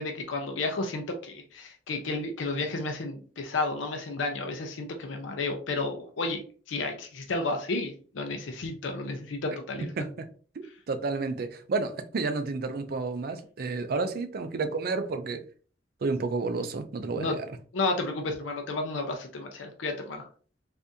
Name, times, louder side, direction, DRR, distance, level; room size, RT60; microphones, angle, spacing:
voice 1, 0.0-6.4 6.7-9.9 17.2-17.3 17.7-20.3, left 3 dB, 85° left, 0.5 m, -32 dB
voice 2, 10.0-10.3 10.6-15.4 16.0-17.5, right 3 dB, 50° right, 0.4 m, -31 dB
3.5 x 2.5 x 2.6 m
head